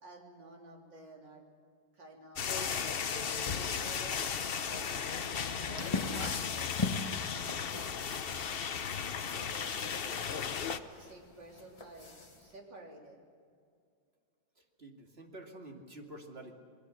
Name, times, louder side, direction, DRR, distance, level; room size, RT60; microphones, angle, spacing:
voice 1, 0.0-1.4 1.9-4.2 4.7-6.8 9.3-12.1 12.4-13.2, right 2 dB, 65° right, 0 dB, 4.1 m, -52 dB
sound 1, 2.4-10.8, left 7 dB, 70° left, 0.5 m, -35 dB
sound 2, 5.8-12.6, left 3 dB, 20° left, 1.0 m, -40 dB
voice 2, 9.5-10.2 14.8-16.5, right 1 dB, 30° right, 2 dB, 2.5 m, -50 dB
27.5 x 21.0 x 6.5 m, 2.2 s
omnidirectional pair, 2.1 m